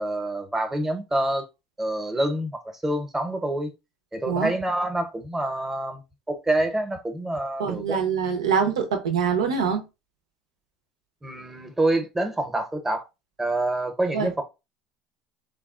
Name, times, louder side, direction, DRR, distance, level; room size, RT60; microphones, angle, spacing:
voice 1, 0.0-1.5 1.8-3.7 4.1-6.0 6.3-8.0 11.2-13.0 13.4-14.4, right 1 dB, 10° right, 0.8 m, -27 dB
voice 2, 7.6-9.8 14.1-14.3, right 6 dB, 85° right, 0.6 m, -24 dB
3.4 x 2.3 x 2.4 m
hypercardioid pair, 80°, 3 cm